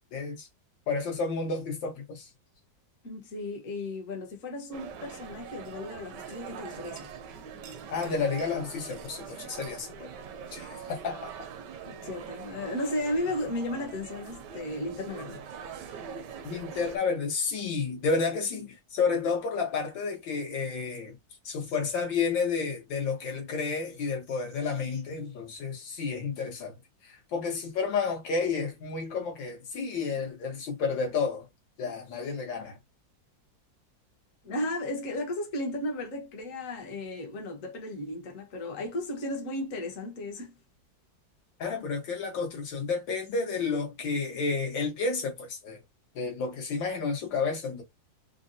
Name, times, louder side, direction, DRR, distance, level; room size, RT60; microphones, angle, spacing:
voice 1, 0.1-0.5 0.9-2.3 7.9-10.1 10.5-11.3 16.4-21.2 21.5-26.7 27.0-31.5 31.8-32.8 41.6-45.8 46.2-47.8, left 4 dB, 80° left, 1.8 m, -31 dB
voice 2, 3.0-7.1 12.0-15.4 34.4-40.5, left 1 dB, 50° left, 1.3 m, -34 dB
sound 1, 4.7-17.0, right 7 dB, 75° right, 1.1 m, -43 dB
4.0 x 2.1 x 2.5 m
omnidirectional pair, 2.0 m